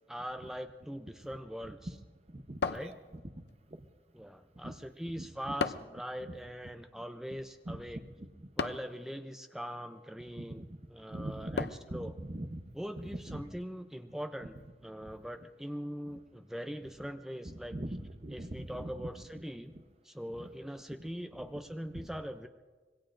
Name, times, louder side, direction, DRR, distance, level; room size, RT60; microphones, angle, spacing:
voice 1, 0.1-1.9 2.7-3.0 4.1-8.0 8.6-12.1 12.7-14.6 14.8-17.8 18.3-19.7 20.0-22.5, equal, 5° right, 6 dB, 0.5 m, -42 dB
voice 2, 2.3-3.0 3.7-3.8 4.6-4.8 5.1-5.3 6.3-6.4 7.7-8.5 10.4-10.8 11.1-12.6 13.0-13.4 17.4-19.1 20.4-20.5 21.4-21.6 21.9-22.1, right 1 dB, 35° right, 7 dB, 0.8 m, -42 dB
sound 1, 2.6-3.5 5.6-6.1 8.6-9.0 11.6-12.0, left 4 dB, 70° left, 0.5 m, -35 dB
26.0 x 22.0 x 2.5 m, 1.4 s
head